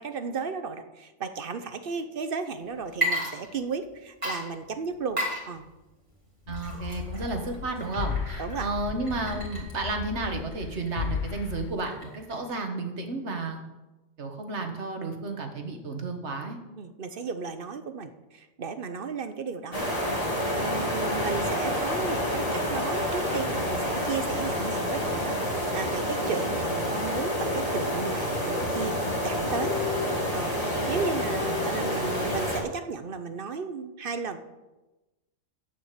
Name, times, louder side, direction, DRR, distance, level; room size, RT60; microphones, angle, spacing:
voice 1, 0.0-5.2 5.5-5.7 8.4-8.7 16.7-19.9 20.5-29.0 29.2-29.7 30.3-34.4, right 5 dB, 55° right, 9 dB, 0.9 m, -34 dB
Water / Liquid, 2.9-3.9 4.2-12.4, right 1 dB, 25° right, 2.7 m, -35 dB
sound 1, 6.5-11.7, left 7 dB, 55° left, 0.6 m, -35 dB
voice 2, 6.5-13.6 14.2-16.6, right 3 dB, 70° right, 5 dB, 1.7 m, -32 dB
sound 2, 19.7-32.6, left 1 dB, 30° left, 2.2 m, -28 dB
8.6 x 7.4 x 8.2 m, 1.1 s
omnidirectional pair, 1.2 m